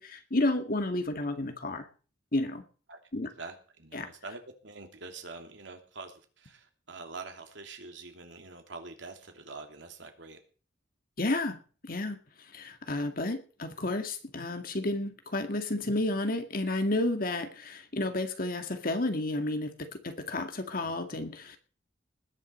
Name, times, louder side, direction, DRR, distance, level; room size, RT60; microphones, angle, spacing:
voice 1, 0.0-1.9 2.3-2.6 3.1-3.3 3.9-4.1 11.2-11.6 11.8-12.2 12.5-21.6, left 2 dB, 50° left, 7 dB, 2.1 m, -31 dB
voice 2, 3.4-10.4 20.8-20.9, right 3 dB, 75° right, 4 dB, 3.1 m, -45 dB
20.0 x 7.8 x 6.5 m, 0.38 s
head